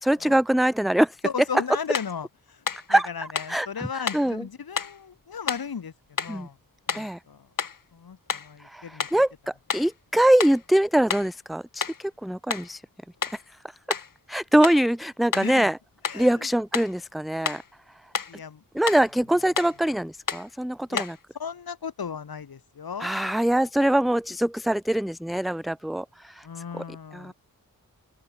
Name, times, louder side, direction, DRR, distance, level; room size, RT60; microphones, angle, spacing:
voice 1, 0.0-1.2 2.7-3.1 3.5-4.4 6.3-6.5 6.9-7.2 8.6-12.8 13.3-13.4 13.9-14.0 14.3-15.8 16.1-17.6 18.7-21.2 23.0-26.5 26.7-26.8 27.1-27.3, right 1 dB, ahead, 0.3 m, -23 dB
voice 2, 1.2-2.6 2.9-5.9 6.2-6.6 6.9-7.5 7.9-9.1 15.3-15.7 16.1-16.5 18.3-18.6 20.9-21.0 21.3-23.1 26.4-27.3, left 6 dB, 85° left, 3.3 m, -35 dB
sound 1, 1.9-2.2 2.7-2.9 3.4-3.6 4.1-4.3 4.8-5.0 5.5-5.7 6.2-6.4 6.9-7.1 7.6-7.8 8.3-8.5 9.0-9.2 9.7-9.9 10.4-10.7 11.1-11.3 11.8-12.1 12.5-12.7 13.2-13.4 13.9-14.1 14.6-14.9 15.3-15.6 16.0-16.3 16.7-17.0 17.4-17.7 18.1-18.4 18.8-19.1 19.6-19.8 20.3-20.5 21.0-21.2, left 6 dB, 65° left, 1.9 m, -31 dB
open air
wide cardioid pair, 70°, 35 cm